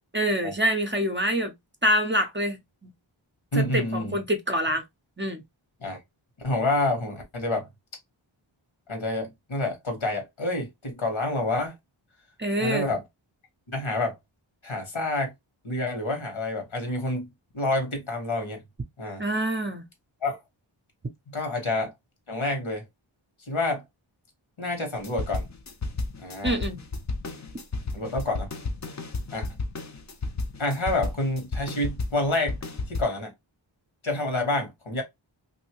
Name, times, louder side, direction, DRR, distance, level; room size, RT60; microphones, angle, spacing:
voice 1, 0.1-1.5 1.8-2.9 3.6-4.8 5.2-5.4 12.4-12.9 19.2-19.8 26.4-26.8, equal, 25° right, 0.6 m, -26 dB
voice 2, 3.5-4.2 5.8-6.0 6.4-7.7 8.9-11.7 12.6-13.0 13.7-14.1 14.6-15.3 15.6-17.3 17.5-18.6 19.0-19.2 20.2-20.4 21.3-21.9 22.3-22.8 23.5-23.8 24.6-25.5 26.2-26.6 27.9-28.5 29.3-29.5 30.6-32.6 32.9-33.3 34.0-35.0, left 2 dB, 70° left, 1.4 m, -28 dB
sound 1, 25.0-33.0, left 3 dB, 35° left, 0.5 m, -32 dB
2.6 x 2.6 x 2.9 m
wide cardioid pair, 70°, 49 cm